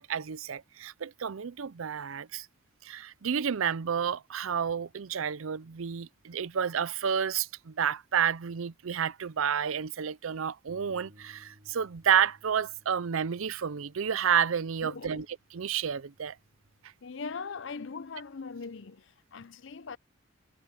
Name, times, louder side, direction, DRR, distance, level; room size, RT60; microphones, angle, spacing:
voice 1, 0.0-2.5 2.8-15.2 15.5-16.4, right 7 dB, 85° right, 0.5 m, -30 dB
Bass guitar, 10.7-16.9, equal, 45° right, 4.1 m, -61 dB
voice 2, 14.8-15.3 17.0-20.0, left 4 dB, 65° left, 0.6 m, -40 dB
head